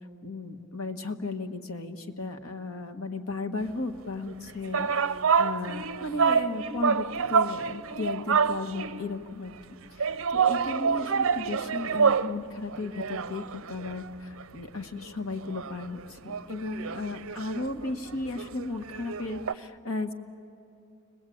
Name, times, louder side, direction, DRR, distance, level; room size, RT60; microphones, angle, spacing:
voice 1, 0.2-9.5 9.9-20.1, left 3 dB, 85° left, 6 dB, 1.5 m, -35 dB
sound 1, 4.3-9.1 10.0-12.4 12.7-14.6 15.0-15.1 15.4-19.5, right 6 dB, 70° right, 0.5 m, -28 dB
30.0 x 21.5 x 8.6 m, 2.8 s
head